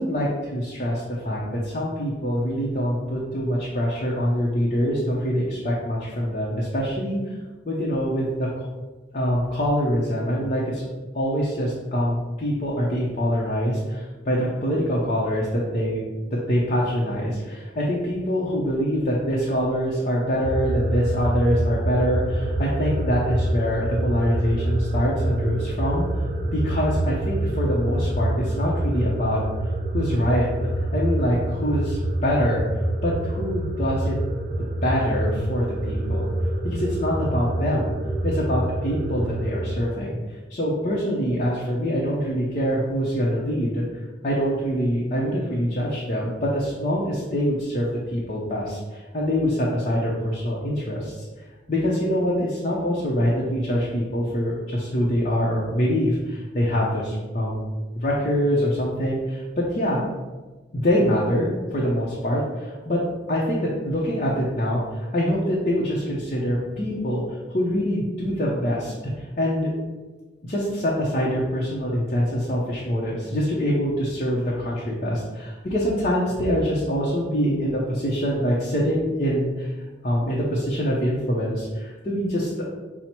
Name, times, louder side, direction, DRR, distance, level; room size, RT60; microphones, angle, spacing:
voice 1, 0.0-7.3 7.7-8.6 9.1-10.9 11.1-16.0 16.3-26.1 26.5-29.4 29.9-30.5 30.9-32.6 33.0-34.1 34.8-36.3 36.6-37.9 38.2-43.8 44.2-51.2 51.7-57.6 57.9-60.0 60.7-63.0 63.3-64.8 65.1-67.2 67.5-68.9 69.4-69.7 70.4-79.7 80.0-82.7, equal, 40° left, -5 dB, 0.7 m, -24 dB
sound 1, 20.4-39.8, right 1 dB, 40° right, 0.5 m, -26 dB
5.6 x 2.1 x 4.3 m, 1.3 s
head